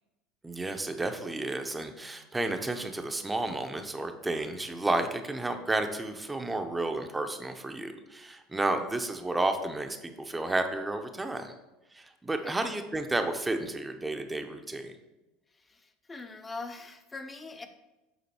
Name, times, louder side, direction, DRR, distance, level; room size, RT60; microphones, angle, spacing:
voice 1, 0.4-11.5 11.9-14.9, right 2 dB, 15° right, 6 dB, 0.7 m, -32 dB
voice 2, 15.5-17.7, left 3 dB, 20° left, 7 dB, 0.8 m, -43 dB
8.5 x 3.8 x 4.4 m, 1.0 s
supercardioid pair, 95°, 0 cm